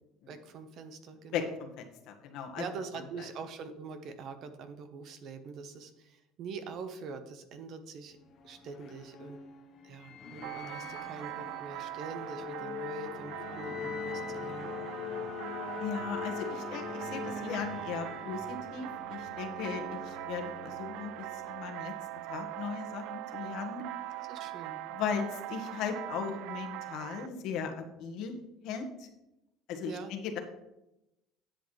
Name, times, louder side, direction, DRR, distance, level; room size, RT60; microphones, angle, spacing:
voice 1, 0.3-1.6 2.5-8.2 8.4-9.4 9.8-14.7 24.3-24.8 29.9-30.1, right 5 dB, 50° right, 9 dB, 1.0 m, -44 dB
voice 2, 1.3-2.6 15.8-21.9 22.3-23.8 24.9-28.4 28.6-28.9 29.7-30.4, left 6 dB, 65° left, 4 dB, 1.5 m, -37 dB
sound 1, 8.1-21.9, left 6 dB, 45° left, 1.1 m, -42 dB
sound 2, 10.4-27.3, right 15 dB, 65° right, 0.4 m, -41 dB
10.0 x 8.0 x 3.3 m, 0.91 s
cardioid pair, 135°, 0 cm